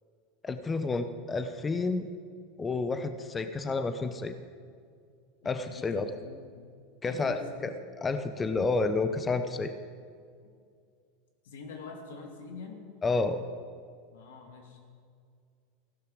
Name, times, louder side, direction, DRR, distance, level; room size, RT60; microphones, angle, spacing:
voice 1, 0.4-2.1 2.6-4.3 5.4-6.1 7.0-9.7 13.0-13.4, left 3 dB, 20° left, 9 dB, 0.7 m, -30 dB
voice 2, 5.4-5.8 6.2-6.7 7.0-7.7 11.4-12.8 14.1-14.8, left 4 dB, 85° left, 3 dB, 2.5 m, -45 dB
15.5 x 12.0 x 5.0 m, 2.2 s
supercardioid pair, 125°, 0 cm